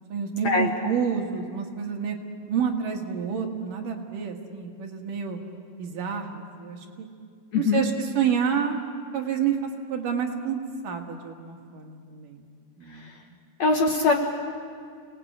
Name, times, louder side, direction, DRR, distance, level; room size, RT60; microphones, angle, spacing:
voice 1, 0.1-2.2 2.5-5.4 5.8-7.1 7.5-9.6 9.9-12.5 12.8-13.2, right 7 dB, 65° right, 1 dB, 3.1 m, -29 dB
voice 2, 7.5-7.8 13.6-14.2, left 4 dB, 60° left, 1 dB, 2.1 m, -21 dB
28.0 x 19.5 x 8.6 m, 2.2 s
omnidirectional pair, 4.4 m